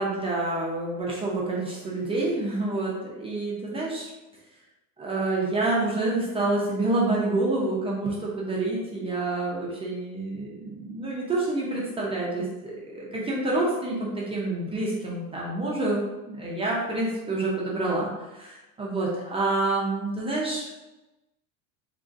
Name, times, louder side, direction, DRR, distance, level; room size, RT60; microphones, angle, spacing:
voice 1, 0.0-4.1 5.0-16.0 16.3-20.9, right 2 dB, 15° right, -4 dB, 0.4 m, -28 dB
2.9 x 2.4 x 2.5 m, 1.0 s
supercardioid pair, 125°, 43 cm